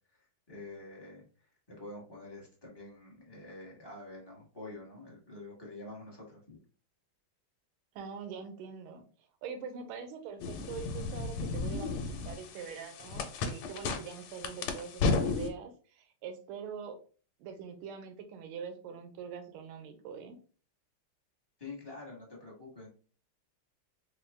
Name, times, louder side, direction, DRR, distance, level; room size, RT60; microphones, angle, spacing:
voice 1, 0.1-6.6 21.6-22.9, left 2 dB, 20° left, -4 dB, 0.7 m, -47 dB
voice 2, 7.9-17.0 17.4-20.4, right 6 dB, 80° right, 6 dB, 1.5 m, -44 dB
sound 1, 10.4-15.5, left 3 dB, 85° left, 1.5 m, -34 dB
4.4 x 2.3 x 3.3 m, 0.40 s
omnidirectional pair, 2.4 m